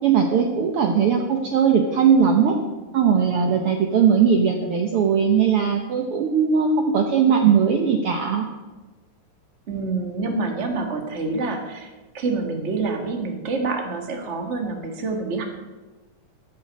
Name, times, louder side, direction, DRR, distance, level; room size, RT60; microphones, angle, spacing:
voice 1, 0.0-2.6 2.9-8.4, right 7 dB, 80° right, 3 dB, 1.3 m, -19 dB
voice 2, 9.7-15.4, right 3 dB, 35° right, 4 dB, 1.1 m, -27 dB
13.5 x 6.3 x 9.4 m, 1.2 s
omnidirectional pair, 4.0 m